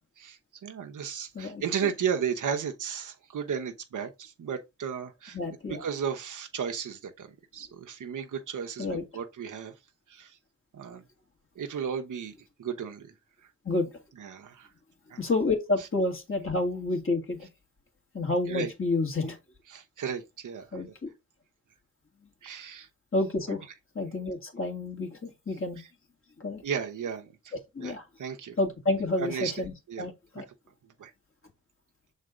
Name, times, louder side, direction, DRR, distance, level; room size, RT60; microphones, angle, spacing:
voice 1, 0.2-5.4 5.7-9.7 10.1-10.4 10.7-11.0 11.6-13.1 14.2-14.7 15.1-15.2 15.8-15.9 18.5-18.7 19.7-20.8 22.4-22.9 23.5-23.6 25.8-25.9 26.6-27.9 28.2-28.6 29.2-29.5 29.9-30.0 30.8-31.1, right 7 dB, 90° right, 1.0 m, -34 dB
voice 2, 1.3-1.9 5.3-5.9 8.8-9.0 13.6-13.9 15.2-17.5 18.1-19.4 20.7-21.1 23.1-23.7 23.9-25.8 26.4-26.6 27.7-28.0 28.6-30.4, left 2 dB, 45° left, 2.2 m, -29 dB
6.7 x 4.2 x 3.7 m
cardioid pair, 70°, 30 cm